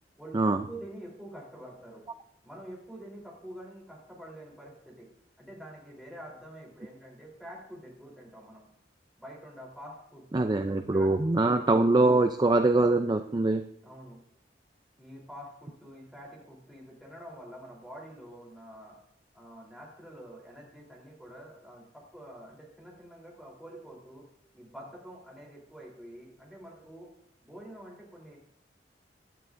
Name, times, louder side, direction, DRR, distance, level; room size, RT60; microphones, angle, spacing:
voice 1, 0.2-2.0 2.4-5.1 5.4-8.7 9.2-11.1 13.8-14.2 15.0-19.0 19.3-24.2 24.5-27.1 27.4-28.4, right 1 dB, ahead, -4 dB, 3.5 m, -47 dB
voice 2, 10.3-13.6, right 2 dB, 25° right, 7 dB, 0.4 m, -23 dB
16.5 x 11.5 x 2.6 m, 0.72 s
head